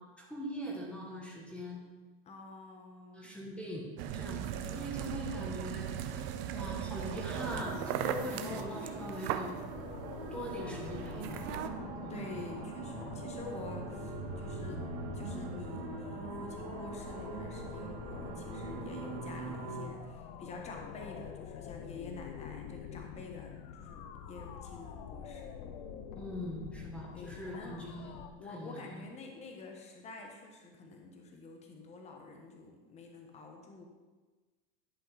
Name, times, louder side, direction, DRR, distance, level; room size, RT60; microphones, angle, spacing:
voice 1, 0.2-1.8 3.1-9.5 10.3-11.6 12.0-12.3 26.2-29.1, equal, 5° left, -3 dB, 1.7 m, -42 dB
voice 2, 2.2-3.4 4.6-4.9 8.2-8.8 12.1-14.8 15.1-25.5 27.1-27.8 28.0-33.9, left 3 dB, 20° left, 2 dB, 1.2 m, -48 dB
sound 1, 4.0-11.7, right 10 dB, 40° right, 0.6 m, -39 dB
sound 2, 7.3-19.9, right 3 dB, 70° right, 2.2 m, -42 dB
sound 3, 9.7-28.3, left 8 dB, 50° left, 0.7 m, -46 dB
11.0 x 5.4 x 4.2 m, 1.3 s
supercardioid pair, 145°, 29 cm